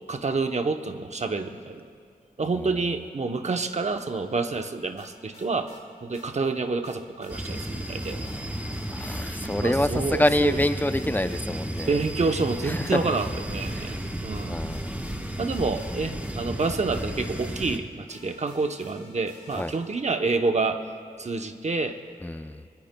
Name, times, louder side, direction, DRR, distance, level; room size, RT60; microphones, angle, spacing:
voice 1, 0.1-1.8 2.4-8.2 9.6-10.6 11.9-14.6 15.4-20.8 21.2-22.0, right 3 dB, 50° right, 6 dB, 0.8 m, -28 dB
sound 1, 5.0-5.8 6.1-6.3 6.8-7.7 8.0-8.4 8.7-9.6 9.9-10.0 10.6-11.4 11.8-12.2 12.5-14.0 14.3-20.1, left 2 dB, 50° left, 2.5 m, -52 dB
sound 2, 7.3-17.8, right 1 dB, 10° right, 1.2 m, -33 dB
voice 2, 8.1-12.0 12.6-13.1 13.7-14.0 14.5-15.1 19.5-19.7 22.2-22.7, left 1 dB, 10° left, 10 dB, 0.5 m, -27 dB
22.5 x 20.0 x 2.2 m, 2.2 s
wide cardioid pair, 75°, 14 cm